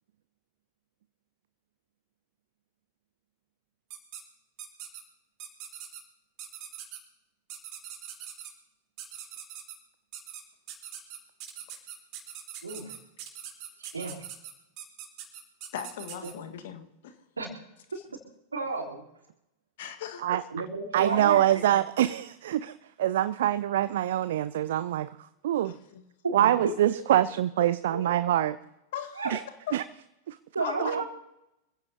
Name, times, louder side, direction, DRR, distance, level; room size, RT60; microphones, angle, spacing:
sound 1, 3.9-4.2 4.6-5.0 5.4-6.0 6.4-7.0 7.5-8.5 9.0-9.7 10.1-10.4 10.7-16.3, right 10 dB, 40° right, 4.3 m, -42 dB
voice 1, 12.6-12.9 13.8-14.3 16.2-16.3 17.4-17.5 18.5-19.0 20.5-21.6 26.2-27.0 27.9-28.1 29.2-29.3 30.5-31.1, right 3 dB, 75° right, -2 dB, 3.7 m, -33 dB
voice 2, 15.7-17.2 19.8-20.3 25.6-26.0 28.9-29.2 29.7-29.8 30.6-31.1, left 9 dB, 55° left, 8 dB, 1.7 m, -38 dB
voice 3, 20.9-25.7 26.3-28.6 29.3-29.4 29.7-29.8 30.3-30.4 30.8-31.0, right 12 dB, 60° right, 15 dB, 0.5 m, -25 dB
26.5 x 15.5 x 2.9 m, 0.88 s
figure-of-eight pair, 90°, 0 cm